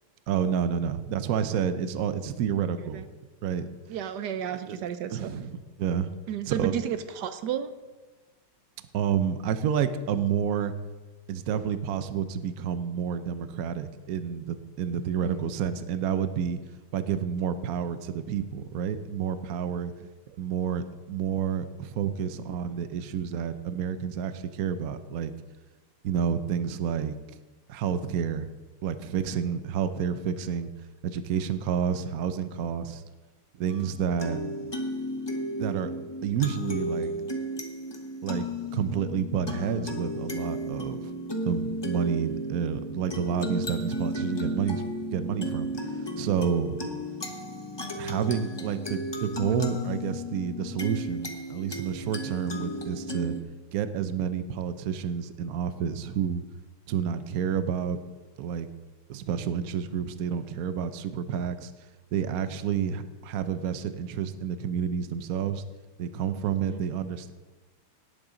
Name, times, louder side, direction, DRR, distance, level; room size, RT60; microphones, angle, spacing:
voice 1, 0.3-3.1 3.4-3.7 4.7-4.8 5.1-6.1 6.5-6.7 8.9-10.7 11.3-16.6 16.9-19.9 20.3-25.3 26.0-27.1 27.7-28.5 28.8-30.7 31.0-33.0 33.6-34.4 35.6-35.9 36.2-37.1 38.2-38.5 38.7-41.0 41.4-46.8 48.0-53.4 53.7-56.4 56.9-58.0 58.4-58.7 59.1-61.7 62.1-65.6 66.0-67.3, right 8 dB, 85° right, 11 dB, 0.8 m, -29 dB
voice 2, 3.9-5.3 6.3-7.7 15.2-15.4 66.7-66.8, right 9 dB, 65° right, 10 dB, 1.1 m, -32 dB
sound 1, 33.7-53.4, equal, 35° left, 0.4 m, -34 dB
17.5 x 8.8 x 3.8 m, 1.2 s
omnidirectional pair, 2.3 m